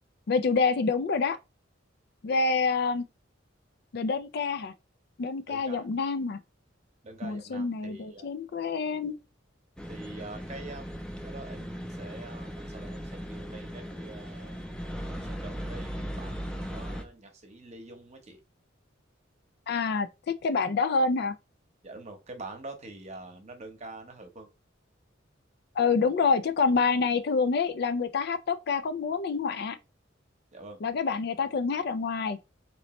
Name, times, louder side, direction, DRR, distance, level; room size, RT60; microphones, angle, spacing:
voice 1, 0.3-1.4 2.2-3.0 3.9-4.7 5.2-6.4 7.2-9.2 19.7-20.1 20.4-21.3 25.8-29.8 30.8-32.4, left 4 dB, 55° left, 0.4 m, -27 dB
voice 2, 5.5-5.8 7.0-8.3 9.9-10.9 11.2-14.6 15.1-18.4 21.8-24.5 30.5-30.8, right 2 dB, 35° right, 0.9 m, -45 dB
sound 1, 9.8-17.0, equal, 5° left, 0.5 m, -38 dB
3.9 x 3.0 x 3.1 m
head